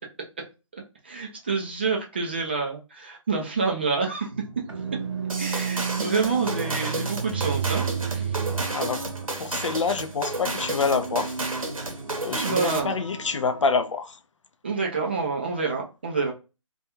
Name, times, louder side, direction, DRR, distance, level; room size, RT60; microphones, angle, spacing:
voice 1, 1.0-4.3 5.4-7.9 8.1-8.4 12.3-13.0 14.6-16.3, right 4 dB, 20° right, 0.3 m, -27 dB
sound 1, 4.3-13.6, right 6 dB, 55° right, 0.6 m, -33 dB
sound 2, 5.3-13.0, right 2 dB, 90° right, 0.7 m, -32 dB
voice 2, 9.4-11.4 12.2-14.2, left 5 dB, 65° left, 0.4 m, -27 dB
2.3 x 2.2 x 2.9 m
figure-of-eight pair, 150°, 17 cm